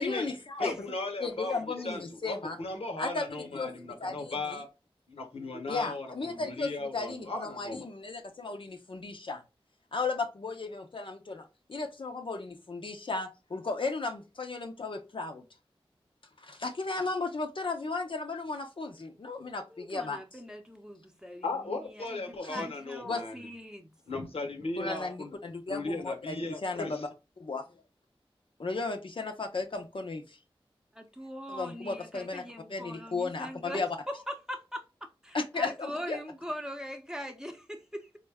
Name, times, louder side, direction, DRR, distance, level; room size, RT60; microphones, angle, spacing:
voice 1, 0.0-0.9 1.2-2.6 3.0-3.7 4.0-4.4 5.7-9.4 9.9-15.4 16.4-20.2 22.4-22.7 23.0-23.2 24.8-27.1 27.4-27.7 28.6-30.4 31.5-32.4 32.7-33.9 35.3-36.2, left 3 dB, 60° left, 0.6 m, -35 dB
voice 2, 0.6-4.7 5.1-7.8 21.4-23.4 24.1-25.4 25.7-27.0, left 3 dB, 80° left, 0.9 m, -37 dB
voice 3, 19.7-23.9 30.9-38.2, equal, 5° right, 0.7 m, -41 dB
3.8 x 2.1 x 3.4 m
cardioid pair, 40°, 10 cm